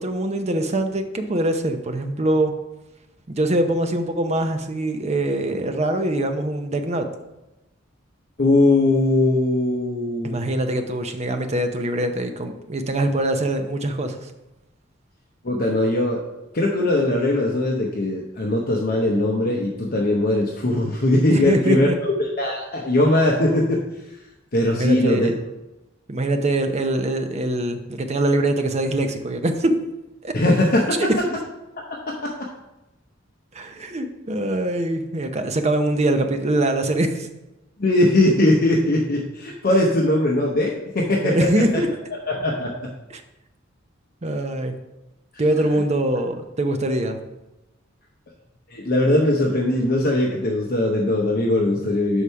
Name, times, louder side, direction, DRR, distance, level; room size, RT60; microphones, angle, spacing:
voice 1, 0.0-2.5 3.3-7.1 10.2-14.3 21.3-22.0 24.8-25.4 26.1-29.7 30.2-30.3 31.0-31.1 33.5-37.3 41.2-41.9 43.1-43.2 44.2-44.7 45.4-47.2, right 1 dB, 35° right, 6 dB, 0.6 m, -23 dB
voice 2, 8.4-10.4 15.4-16.2 16.5-21.9 22.2-23.8 24.5-25.3 30.3-31.2 31.8-32.5 37.8-41.8 42.3-42.9 48.7-52.2, left 1 dB, 50° left, -1 dB, 0.7 m, -20 dB
5.5 x 4.8 x 5.6 m, 0.96 s
head